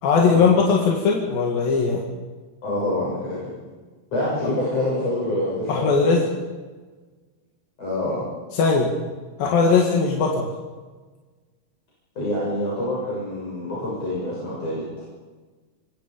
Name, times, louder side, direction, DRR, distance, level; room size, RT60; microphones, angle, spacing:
voice 1, 0.0-2.0 5.7-6.3 8.5-8.9 9.4-10.5, left 5 dB, 80° left, -1 dB, 4.0 m, -19 dB
voice 2, 2.6-3.4 4.1-6.1 7.8-8.3 12.2-14.8, left 1 dB, 45° left, -6 dB, 8.0 m, -26 dB
27.5 x 22.5 x 5.4 m, 1.3 s
omnidirectional pair, 4.0 m